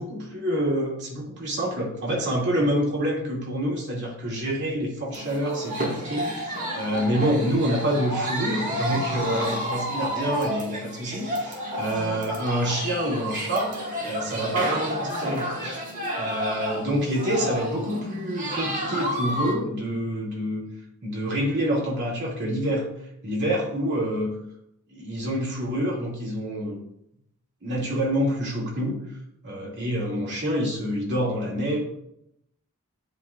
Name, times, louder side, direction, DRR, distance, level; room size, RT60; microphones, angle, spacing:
voice 1, 0.0-13.8 14.1-15.8 16.2-20.7 21.0-22.9 23.2-24.3 24.9-26.8 27.6-29.0 29.4-31.8, equal, 50° right, -4 dB, 2.5 m, -27 dB
sound 1, 5.1-19.5, equal, 35° right, 1.8 m, -31 dB
9.7 x 5.3 x 2.5 m, 0.76 s
head